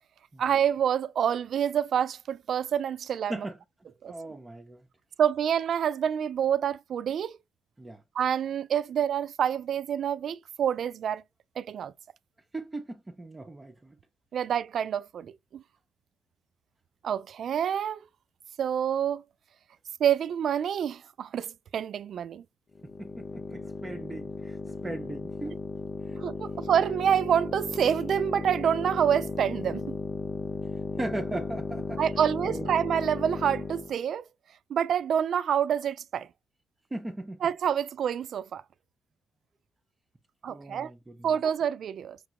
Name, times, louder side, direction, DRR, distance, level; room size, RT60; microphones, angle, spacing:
voice 1, 0.4-3.3 4.0-4.1 5.2-7.4 8.1-11.2 11.6-11.9 14.3-15.6 17.0-18.0 18.6-19.2 20.0-22.4 26.2-30.0 32.0-34.2 34.7-36.3 37.4-38.6 40.4-40.9 41.2-42.2, right 8 dB, 60° right, 0.3 m, -27 dB
voice 2, 4.0-4.9 7.8-8.0 12.5-14.0 22.8-25.6 26.0-26.2 31.0-32.0 32.4-32.7 36.9-37.4 40.5-41.3, right 2 dB, 20° right, 0.6 m, -38 dB
sound 1, 22.7-34.0, left 4 dB, 45° left, 0.4 m, -35 dB
5.8 x 2.3 x 2.8 m
cardioid pair, 90°, 0 cm